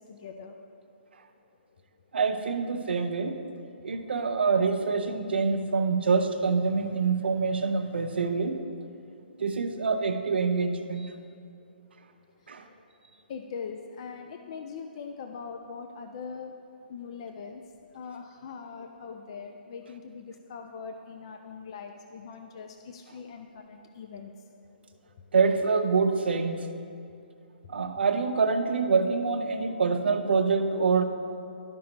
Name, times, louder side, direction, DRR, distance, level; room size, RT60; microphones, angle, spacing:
voice 1, 0.1-0.6 9.0-9.2 12.4-12.8 13.3-16.6 16.9-17.6 17.9-24.5 25.1-25.3 27.0-27.3 27.6-27.7, left 5 dB, 30° left, 5 dB, 0.3 m, -42 dB
voice 2, 2.1-8.6 9.4-11.1 12.5-12.7 25.3-26.7 27.7-31.0, right 4 dB, 75° right, 6 dB, 0.7 m, -26 dB
12.5 x 5.2 x 2.9 m, 2.4 s
hypercardioid pair, 170°, 6 cm